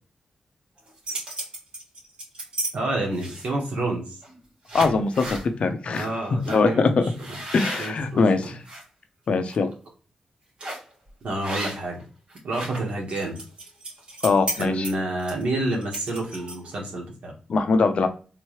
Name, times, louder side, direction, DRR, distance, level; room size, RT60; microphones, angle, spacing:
sound 1, 0.8-2.7 3.1-3.6 4.2-4.4 4.7-5.5 5.9-6.1 6.4-6.6 7.1-8.8 9.3-9.5 10.6-10.9 11.4-12.0 12.3-16.8, right 1 dB, 55° right, 2.0 m, -34 dB
voice 1, 2.7-4.2 5.9-7.4 7.8-8.4 11.2-12.0 12.4-13.4 14.5-17.3, right 2 dB, 90° right, -1 dB, 1.5 m, -29 dB
voice 2, 4.7-6.1 6.5-7.0 7.5-8.5 9.3-9.7 14.2-14.9 17.5-18.1, left 4 dB, 65° left, 8 dB, 0.6 m, -22 dB
3.6 x 3.0 x 3.1 m, 0.37 s
wide cardioid pair, 130°, 2 cm